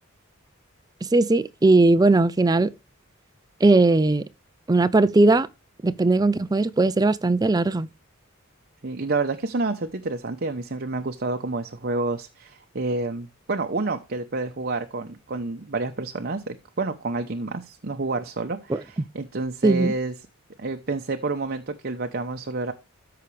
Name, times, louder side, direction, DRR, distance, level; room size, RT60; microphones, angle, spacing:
voice 1, 1.0-2.7 3.6-4.2 4.7-5.5 5.8-7.9 18.7-18.8 19.6-19.9, right 2 dB, 15° right, 0.4 m, -19 dB
voice 2, 8.8-20.1 20.6-22.7, right 3 dB, 45° right, 0.8 m, -29 dB
13.5 x 5.8 x 3.3 m
head